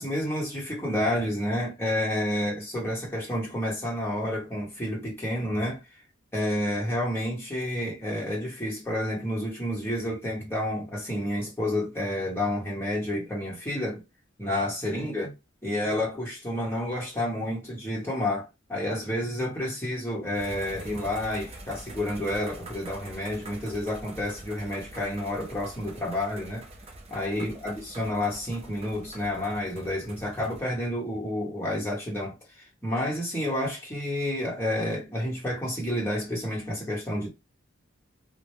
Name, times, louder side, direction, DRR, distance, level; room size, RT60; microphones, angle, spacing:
voice 1, 0.0-5.8 6.3-14.0 14.4-15.3 15.6-26.7 27.1-37.3, left 1 dB, 10° left, 1.0 m, -30 dB
sound 1, 20.3-30.7, right 1 dB, 30° right, 0.4 m, -45 dB
2.1 x 2.1 x 3.0 m
head